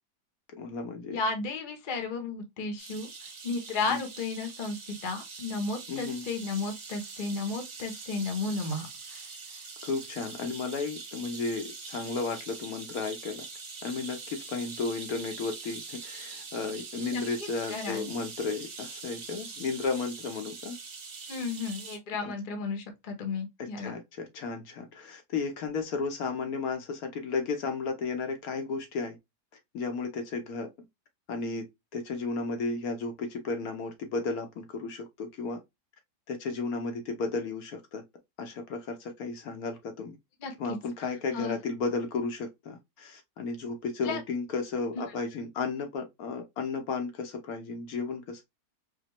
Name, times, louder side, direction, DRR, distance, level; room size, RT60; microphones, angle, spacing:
voice 1, 0.6-1.2 3.9-4.0 5.9-6.2 9.8-13.5 13.8-20.8 22.2-22.3 23.8-29.2 29.7-30.7 31.3-31.7 31.9-35.6 36.3-38.0 38.4-40.2 40.6-48.4, left 4 dB, 70° left, 1.1 m, -33 dB
voice 2, 1.1-3.1 3.4-4.8 5.0-9.2 17.0-17.2 17.7-18.1 21.3-23.9 40.4-40.8 41.3-41.6 44.0-44.2, left 4 dB, 40° left, 0.8 m, -33 dB
sound 1, 2.8-22.0, right 4 dB, 60° right, 1.4 m, -43 dB
5.0 x 2.2 x 2.9 m
omnidirectional pair, 1.7 m